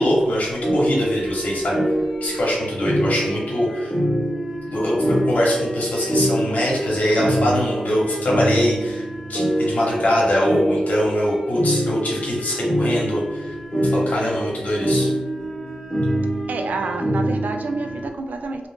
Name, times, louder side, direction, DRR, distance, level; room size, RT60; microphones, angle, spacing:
voice 1, 0.0-1.8 2.2-3.9 4.7-13.5 13.9-15.1, left 1 dB, 70° left, -4 dB, 1.1 m, -22 dB
sound 1, 0.6-18.1, right 1 dB, 25° left, 0.9 m, -25 dB
voice 2, 16.5-18.7, right 3 dB, 90° right, 5 dB, 0.3 m, -28 dB
2.5 x 2.5 x 3.5 m, 1.1 s
wide cardioid pair, 85°, 3 cm